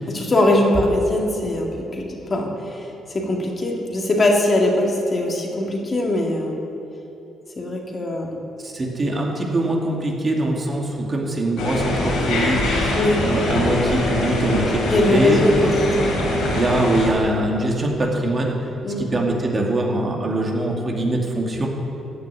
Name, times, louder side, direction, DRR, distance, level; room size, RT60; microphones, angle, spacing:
voice 1, 0.1-6.6 7.6-8.4 12.9-13.3 14.9-16.3 18.8-19.1, left 1 dB, 35° left, 0 dB, 2.0 m, -21 dB
voice 2, 8.6-18.6 19.0-21.7, right 1 dB, 30° right, 0 dB, 2.3 m, -23 dB
sound 1, 11.6-17.1, left 2 dB, 90° left, 3.5 m, -23 dB
14.5 x 6.5 x 9.7 m, 3.0 s
cardioid pair, 90°, 0 cm